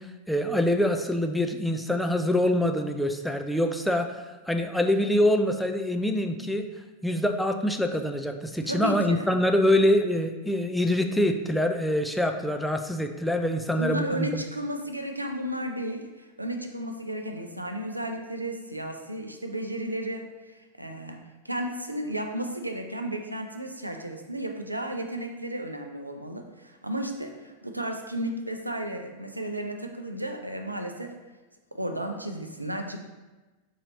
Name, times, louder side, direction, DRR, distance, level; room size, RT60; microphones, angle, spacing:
voice 1, 0.3-6.7 7.0-14.4, left 1 dB, ahead, 5 dB, 0.3 m, -25 dB
voice 2, 8.6-9.3 13.8-31.1 31.7-33.0, right 1 dB, 85° right, 4 dB, 0.4 m, -33 dB
4.1 x 2.8 x 3.8 m, 1.2 s
figure-of-eight pair, 90°, 0 cm